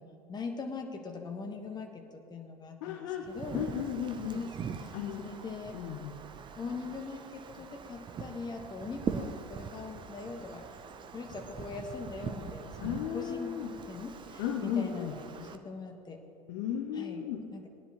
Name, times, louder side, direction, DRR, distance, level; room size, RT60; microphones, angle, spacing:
voice 1, 0.0-3.7 4.2-5.8 6.6-10.6 11.1-13.6 13.8-16.2 16.9-17.7, left 4 dB, 20° left, 3 dB, 1.4 m, -41 dB
voice 2, 2.8-3.3 3.5-4.4 4.9-5.3 5.7-6.1 12.8-13.7 14.4-15.1 16.5-17.4, left 9 dB, 55° left, 5 dB, 0.9 m, -34 dB
Wind, 3.2-15.6, right 6 dB, 25° right, 0.7 m, -42 dB
19.5 x 10.0 x 3.0 m, 2.4 s
figure-of-eight pair, 75°, 19 cm